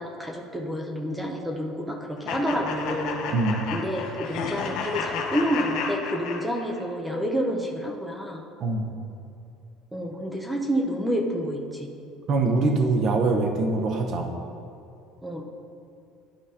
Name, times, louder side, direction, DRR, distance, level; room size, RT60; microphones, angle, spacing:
voice 1, 0.0-3.2 3.7-8.4 9.9-11.9 15.2-15.4, equal, 5° right, 1 dB, 0.6 m, -29 dB
sound 1, 2.3-6.9, left 5 dB, 65° left, 0.8 m, -32 dB
voice 2, 3.3-3.6 8.6-8.9 12.3-14.3, right 3 dB, 40° right, 3 dB, 0.8 m, -23 dB
11.0 x 4.8 x 2.8 m, 2.5 s
cardioid pair, 150°, 0 cm